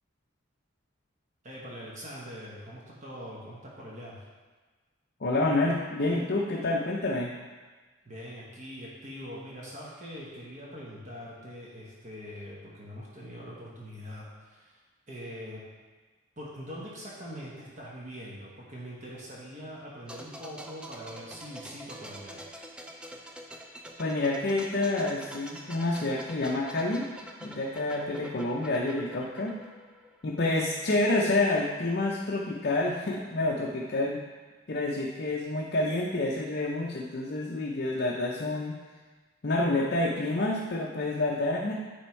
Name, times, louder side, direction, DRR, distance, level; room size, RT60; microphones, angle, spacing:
voice 1, 1.4-4.2 8.0-14.8 15.1-15.6 16.4-22.4, equal, 35° right, -5 dB, 1.1 m, -43 dB
voice 2, 5.2-7.3 24.0-27.1 27.4-29.6 30.2-34.2 34.7-38.8 39.4-41.7, left 2 dB, 50° left, -3 dB, 0.6 m, -28 dB
sound 1, 20.1-30.7 31.0-31.1, equal, 5° right, 0.3 m, -46 dB
9.2 x 3.5 x 4.4 m, 1.3 s
head